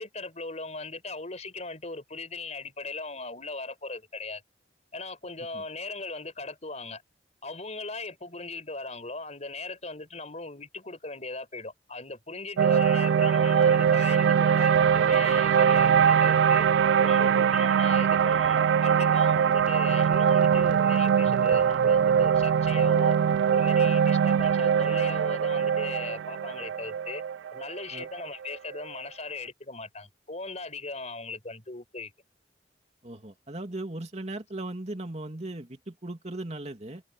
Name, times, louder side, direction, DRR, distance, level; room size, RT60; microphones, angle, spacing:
voice 1, 0.0-4.4 4.9-7.0 7.4-16.7 17.0-23.2 23.5-27.2 27.5-32.1, left 3 dB, 40° left, 5.6 m, -38 dB
sound 1, 12.6-28.8, right 7 dB, 90° right, 0.3 m, -22 dB
voice 2, 33.0-37.0, right 2 dB, 40° right, 2.8 m, -38 dB
head